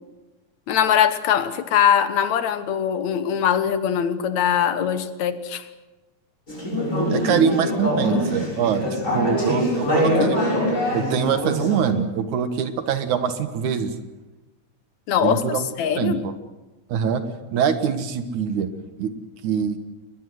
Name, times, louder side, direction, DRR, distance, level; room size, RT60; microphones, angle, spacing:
voice 1, 0.7-5.7 15.1-16.2, left 9 dB, 70° left, 12 dB, 2.4 m, -21 dB
Conversation / Chatter, 6.5-11.9, left 1 dB, 25° left, 7.0 m, -23 dB
voice 2, 7.1-10.4 10.9-13.9 15.2-15.7 16.0-16.3 16.9-17.2 17.5-18.7 19.0-19.1 19.4-19.8, right 7 dB, 75° right, 10 dB, 2.9 m, -23 dB
23.0 x 20.5 x 7.8 m, 1.1 s
omnidirectional pair, 3.5 m